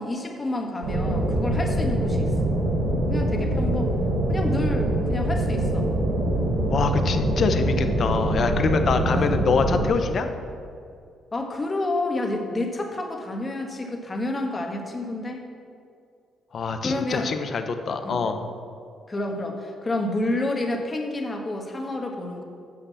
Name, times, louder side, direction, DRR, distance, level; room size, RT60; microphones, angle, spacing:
voice 1, 0.0-2.5 3.1-3.9 4.3-5.9 9.1-9.3 9.7-9.9 11.3-15.4 16.8-17.3 18.0-18.2 19.1-22.4, left 2 dB, 25° left, 2 dB, 1.5 m, -29 dB
High Winds, 0.8-9.9, right 1 dB, 80° right, 1.6 m, -24 dB
voice 2, 6.7-10.3 16.5-18.5, left 5 dB, 50° left, 8 dB, 0.8 m, -25 dB
8.4 x 6.6 x 7.2 m, 2.4 s
cardioid pair, 90°, 0 cm